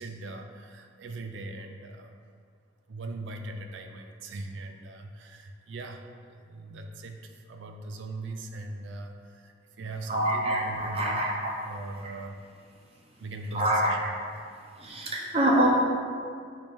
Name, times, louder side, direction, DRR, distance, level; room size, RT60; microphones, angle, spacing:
voice 1, 0.0-2.2 2.9-6.0 6.3-11.3 11.6-12.4 13.2-14.1, right 2 dB, 85° right, 4 dB, 0.4 m, -40 dB
voice 2, 10.1-11.5 13.5-14.0 14.8-15.7, right 1 dB, 30° right, -3 dB, 0.6 m, -25 dB
4.9 x 2.9 x 3.5 m, 2.2 s
head